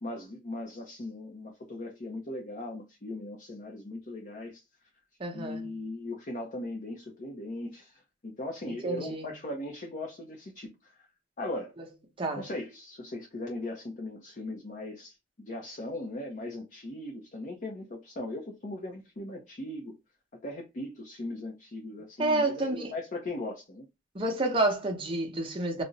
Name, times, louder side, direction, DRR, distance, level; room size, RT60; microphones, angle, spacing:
voice 1, 0.0-4.6 5.3-11.1 11.4-11.7 12.4-19.9 20.4-23.9, left 1 dB, 45° left, 0.6 m, -39 dB
voice 2, 5.2-5.7 8.7-9.2 12.2-12.4 22.2-22.9 24.1-25.8, right 2 dB, 30° right, 0.7 m, -29 dB
2.4 x 2.1 x 3.9 m
head